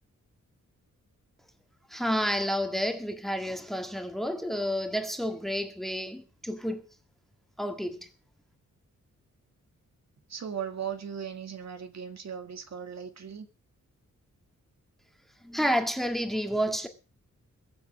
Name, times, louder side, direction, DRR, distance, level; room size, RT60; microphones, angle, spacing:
voice 1, 1.9-6.9 7.6-8.1 15.4-16.9, equal, ahead, 1.8 m, -30 dB
voice 2, 10.3-13.5, right 8 dB, 60° right, 2.0 m, -37 dB
22.0 x 7.6 x 6.1 m
wide cardioid pair, 150°, 30 cm